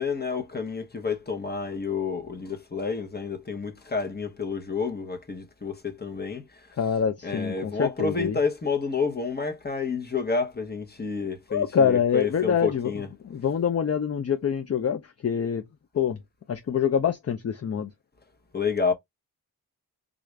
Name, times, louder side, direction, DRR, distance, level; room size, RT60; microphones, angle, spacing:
voice 1, 0.0-6.6 7.2-13.1 18.5-18.9, left 5 dB, 25° left, 0.9 m, -29 dB
voice 2, 6.7-8.4 11.5-15.6 15.9-16.2 16.5-17.9, left 7 dB, 40° left, 0.5 m, -25 dB
3.7 x 2.4 x 3.2 m
wide cardioid pair, 95°, 39 cm